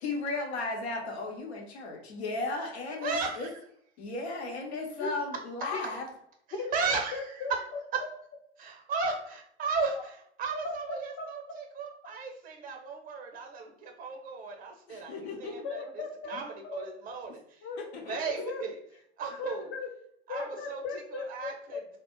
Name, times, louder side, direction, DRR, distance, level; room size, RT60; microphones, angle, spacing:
voice 1, 0.0-3.5 4.0-6.1 14.9-15.6 16.3-16.4 17.8-18.3, left 3 dB, 70° left, 1 dB, 0.9 m, -35 dB
voice 2, 3.0-3.5 6.7-7.2 8.6-15.8 16.3-17.4 18.1-18.8 19.2-19.7 20.3-20.8 21.1-21.8, right 4 dB, 25° right, 2 dB, 0.7 m, -35 dB
voice 3, 6.5-7.5 10.6-11.3 15.6-16.4 16.6-16.9 17.6-17.8 18.3-18.7 19.3-19.9 20.3-21.8, left 4 dB, 40° left, 2 dB, 0.7 m, -37 dB
2.3 x 2.0 x 2.9 m, 0.68 s
figure-of-eight pair, 75°, 33 cm